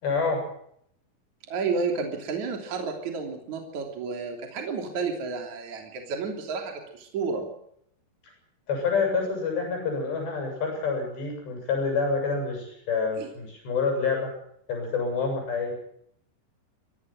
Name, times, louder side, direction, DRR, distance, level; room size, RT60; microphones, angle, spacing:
voice 1, 0.0-0.4 8.7-14.3 14.7-15.7, left 4 dB, 85° left, 3 dB, 9.5 m, -27 dB
voice 2, 1.5-7.5 13.2-13.3, right 4 dB, 45° right, 3 dB, 4.3 m, -31 dB
24.0 x 18.5 x 5.9 m, 0.70 s
omnidirectional pair, 4.8 m